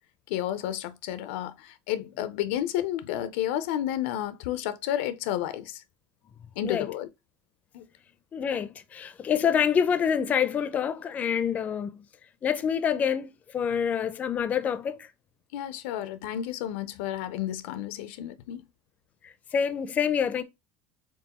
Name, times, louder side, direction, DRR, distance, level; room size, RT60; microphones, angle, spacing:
voice 1, 0.3-5.8 6.6-7.1 7.7-7.9 15.5-18.6, left 12 dB, 90° left, 0.5 m, -31 dB
voice 2, 8.3-12.0 12.4-15.1 19.2-20.4, left 7 dB, 25° left, 0.4 m, -27 dB
4.5 x 3.6 x 2.9 m
cardioid pair, 155°, 6 cm